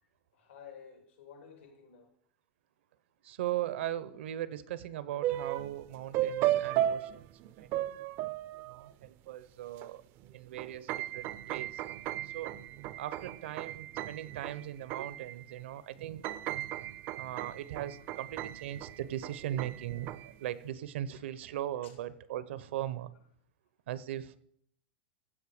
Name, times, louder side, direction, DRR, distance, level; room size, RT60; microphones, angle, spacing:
voice 1, 0.3-2.1 18.0-18.1 20.3-20.4 21.8-21.9, left 7 dB, 85° left, 2.9 m, -53 dB
voice 2, 3.2-7.3 7.6-7.9 8.6-10.0 10.3-11.8 12.2-12.6 13.0-16.2 17.2-23.1 23.9-24.4, right 12 dB, 80° right, 0.8 m, -39 dB
sound 1, 5.2-5.8 6.1-9.1 9.8-9.9 10.2-15.6 16.0-20.4, right 13 dB, 35° right, 0.4 m, -35 dB
15.5 x 5.3 x 4.9 m
supercardioid pair, 155°, 6 cm